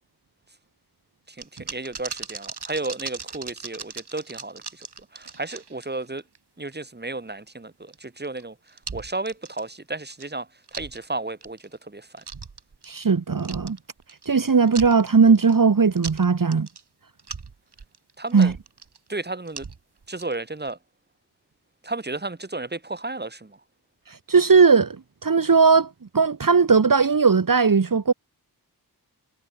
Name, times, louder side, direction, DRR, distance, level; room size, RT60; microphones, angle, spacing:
voice 1, 1.3-4.9 5.1-6.2 6.6-8.6 8.9-11.6 11.9-12.2 18.2-18.6 19.1-19.6 20.1-20.8 21.8-23.6, right 2 dB, 25° right, 2.4 m, -33 dB
sound 1, 1.4-6.4 6.7-6.8 7.9-8.4 8.7-9.8 10.1-10.3 10.7-11.0 11.4-11.7 12.2-13.1 13.4-14.4 14.6-15.5 15.9-16.8 17.2-19.0 19.5-20.3 20.6-20.7, right 5 dB, 75° right, 4.7 m, -38 dB
voice 2, 12.9-13.8 14.3-16.7 18.3-18.5 24.1-25.0 25.2-28.1, right 5 dB, 55° right, 1.7 m, -18 dB
cardioid pair, 50°, 40 cm